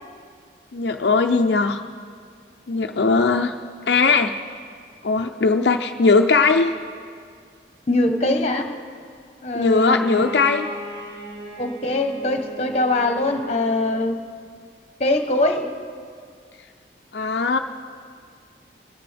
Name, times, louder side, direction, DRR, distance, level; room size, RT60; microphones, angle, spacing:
voice 1, 0.7-1.8 2.7-3.5 3.9-4.3 5.0-6.7 9.5-10.7 17.1-17.6, left 4 dB, 70° left, 4 dB, 0.5 m, -19 dB
voice 2, 7.9-8.7 9.4-10.2 11.6-14.2 15.0-15.7, left 2 dB, 35° left, 5 dB, 1.1 m, -22 dB
Bowed string instrument, 9.5-14.2, left 1 dB, 60° right, 4.2 m, -37 dB
24.0 x 13.5 x 3.4 m, 2.1 s
head